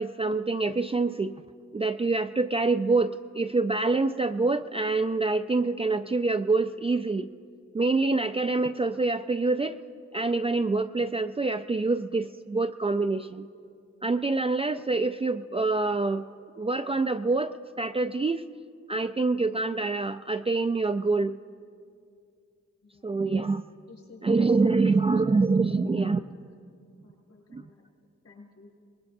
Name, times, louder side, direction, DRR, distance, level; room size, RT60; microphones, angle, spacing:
voice 1, 0.0-1.3 1.7-7.3 7.7-9.7 10.1-13.5 14.0-16.3 16.6-17.5 17.8-18.4 18.9-21.4 23.0-23.6 24.2-26.2 27.5-27.7, right 3 dB, 20° right, 8 dB, 0.3 m, -26 dB
voice 2, 23.9-26.4 27.0-27.8 28.2-28.7, left 2 dB, 60° left, -2 dB, 5.1 m, -51 dB
23.5 x 20.0 x 2.6 m, 2.3 s
cardioid pair, 75°, 30 cm